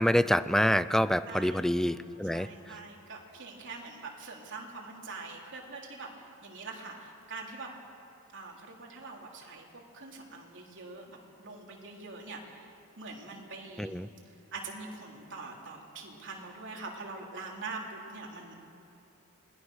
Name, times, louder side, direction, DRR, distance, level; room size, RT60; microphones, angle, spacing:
voice 1, 0.0-2.5 13.8-14.1, equal, ahead, 14 dB, 0.4 m, -26 dB
voice 2, 1.3-1.7 2.2-7.7 8.3-12.7 13.0-14.0 14.5-18.5, right 3 dB, 55° right, 0 dB, 3.6 m, -44 dB
27.5 x 21.0 x 6.4 m, 3.0 s
head